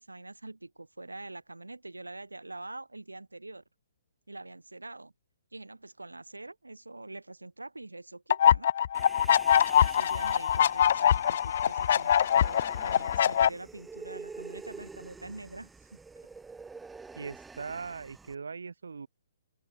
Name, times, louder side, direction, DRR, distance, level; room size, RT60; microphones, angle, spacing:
voice 1, 0.0-3.6 4.3-5.1 5.5-8.7 9.8-16.0, right 2 dB, 85° right, 2.5 m, -45 dB
sound 1, 8.3-13.5, left 9 dB, 55° left, 0.3 m, -23 dB
Human voice, 8.9-18.3, right 4 dB, 10° right, 2.0 m, -48 dB
voice 2, 17.2-19.1, right 5 dB, 70° right, 2.3 m, -40 dB
open air
figure-of-eight pair, 125°, 0 cm